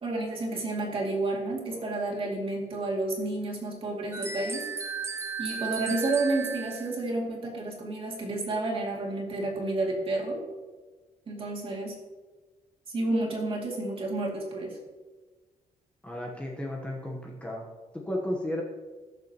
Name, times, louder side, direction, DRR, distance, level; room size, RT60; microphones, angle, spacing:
voice 1, 0.0-4.7 5.4-10.4 11.3-12.0 12.9-14.8, right 2 dB, 40° right, -2 dB, 2.4 m, -30 dB
sound 1, 4.1-7.0, right 5 dB, 20° right, 0.6 m, -35 dB
voice 2, 16.0-18.6, left 1 dB, 10° left, -2 dB, 1.1 m, -34 dB
19.0 x 6.9 x 3.0 m, 1.3 s
wide cardioid pair, 175°, 15 cm